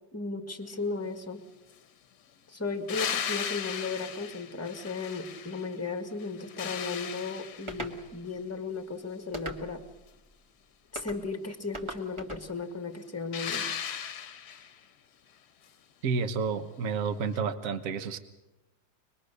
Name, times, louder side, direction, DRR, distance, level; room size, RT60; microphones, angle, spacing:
voice 1, 0.1-1.4 2.5-9.8 10.9-13.6, left 4 dB, 10° left, 7 dB, 1.5 m, -35 dB
sound 1, 2.9-5.8 6.2-8.0 13.3-14.8 17.3-17.4, left 8 dB, 60° left, 1.4 m, -36 dB
sound 2, 7.7-8.0 9.3-9.9 11.0-11.2 11.7-12.5, right 1 dB, 15° right, 1.8 m, -39 dB
voice 2, 16.0-18.2, right 5 dB, 50° right, 9 dB, 1.5 m, -30 dB
25.0 x 21.0 x 6.6 m, 1.0 s
omnidirectional pair, 2.1 m